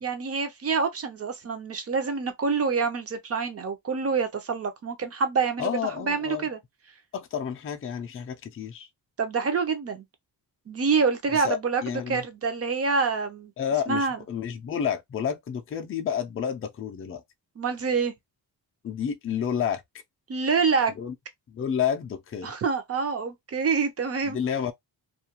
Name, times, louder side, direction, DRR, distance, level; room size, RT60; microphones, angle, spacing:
voice 1, 0.0-6.6 9.2-10.0 10.7-13.5 13.9-14.2 17.6-18.1 20.3-20.9 22.4-24.4, right 5 dB, 35° right, 0.6 m, -26 dB
voice 2, 5.6-6.5 7.1-8.9 11.3-12.2 13.6-17.2 18.8-19.8 21.0-21.1 21.5-22.5 24.2-24.7, left 8 dB, 35° left, 0.4 m, -30 dB
2.4 x 2.2 x 2.8 m
wide cardioid pair, 170°, 42 cm